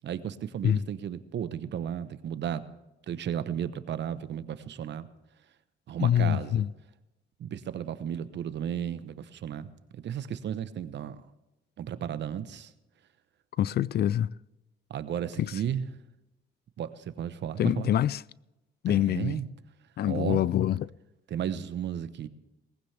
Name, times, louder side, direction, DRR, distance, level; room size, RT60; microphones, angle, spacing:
voice 1, 0.0-2.6 3.1-5.1 5.9-6.7 7.4-9.7 9.9-11.2 11.8-12.7 14.9-15.9 16.8-17.9 18.9-19.5 20.1-20.4 21.3-22.3, right 9 dB, 65° right, 0.9 m, -34 dB
voice 2, 6.0-6.7 13.6-14.3 15.4-15.6 17.6-18.2 18.8-19.4 20.0-20.9, left 11 dB, 55° left, 0.4 m, -25 dB
19.0 x 15.5 x 3.4 m
cardioid pair, 90°, 20 cm